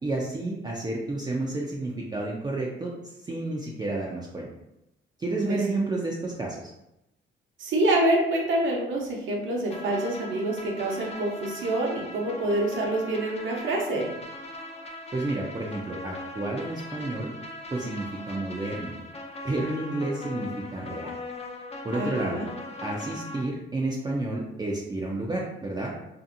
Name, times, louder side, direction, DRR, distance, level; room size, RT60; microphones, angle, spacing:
voice 1, 0.0-4.5 5.2-6.7 15.1-17.3 17.7-19.0 19.4-21.1 21.8-22.4 22.8-25.9, right 2 dB, 20° right, -3 dB, 0.4 m, -30 dB
voice 2, 7.6-14.1 21.9-22.5, right 1 dB, 75° right, -1 dB, 0.8 m, -26 dB
sound 1, 9.7-23.4, left 2 dB, 30° left, 0.5 m, -40 dB
2.7 x 2.5 x 2.5 m, 0.88 s
cardioid pair, 90°, 20 cm